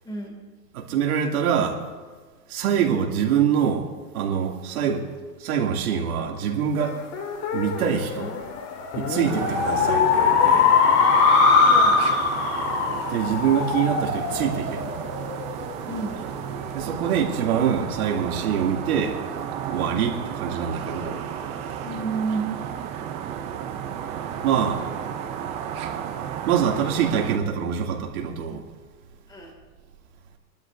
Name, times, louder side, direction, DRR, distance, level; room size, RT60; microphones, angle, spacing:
voice 1, 0.0-0.4 11.7-11.9 15.9-16.2 21.8-22.7 29.3-29.6, right 4 dB, 10° left, 0 dB, 2.2 m, -30 dB
voice 2, 0.7-1.8 2.5-3.9 4.1-5.1 5.4-7.0 7.5-8.3 9.0-10.7 13.1-15.0 16.7-19.2 19.7-21.2 24.4-24.9 26.5-28.6, right 8 dB, 70° right, 0 dB, 2.5 m, -24 dB
sound 1, 6.8-15.6, left 5 dB, 35° left, 1.8 m, -21 dB
sound 2, 9.2-27.4, right 8 dB, 15° right, 0.3 m, -33 dB
26.5 x 12.5 x 2.6 m, 1.5 s
supercardioid pair, 140°, 45 cm